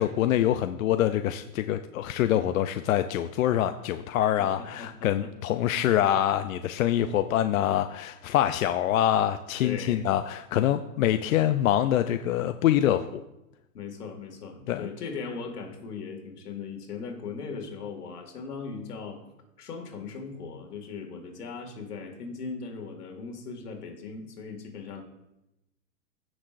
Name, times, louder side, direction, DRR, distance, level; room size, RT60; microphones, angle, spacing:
voice 1, 0.0-13.2 14.7-14.9, left 11 dB, 65° left, 9 dB, 0.5 m, -25 dB
voice 2, 4.4-5.3 9.6-10.1 13.7-19.2 19.6-25.0, left 5 dB, 85° left, 4 dB, 2.1 m, -38 dB
16.0 x 6.1 x 2.5 m, 0.90 s
hypercardioid pair, 150°, 45 cm